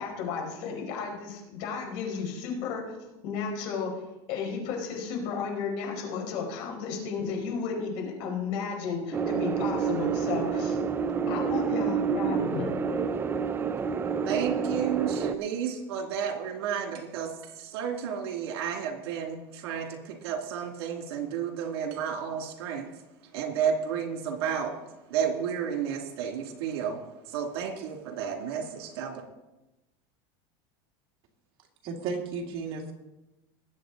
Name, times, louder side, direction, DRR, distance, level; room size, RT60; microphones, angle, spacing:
voice 1, 0.0-2.8 3.2-3.9 4.3-10.8 11.3-13.0, left 5 dB, 60° left, 0 dB, 5.0 m, -33 dB
sound 1, 9.1-15.3, right 6 dB, 15° right, 0.4 m, -28 dB
voice 2, 14.3-22.9 23.3-24.8 25.1-27.0 27.3-29.2, right 7 dB, 75° right, 3 dB, 2.6 m, -32 dB
voice 3, 31.8-32.9, right 4 dB, 45° right, 1 dB, 2.2 m, -33 dB
20.0 x 8.3 x 4.0 m, 0.99 s
supercardioid pair, 145°, 13 cm